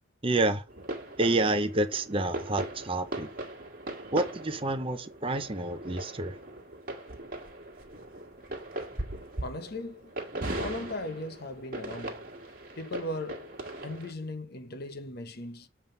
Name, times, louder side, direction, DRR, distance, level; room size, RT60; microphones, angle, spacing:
voice 1, 0.2-0.6 1.2-3.3 4.1-6.4, right 2 dB, 25° right, 0.7 m, -28 dB
sound 1, 0.7-14.1, right 1 dB, 45° right, 1.7 m, -39 dB
voice 2, 9.4-10.1 10.6-12.2 12.8-15.7, left 2 dB, 50° left, 0.8 m, -38 dB
7.5 x 3.6 x 5.4 m
head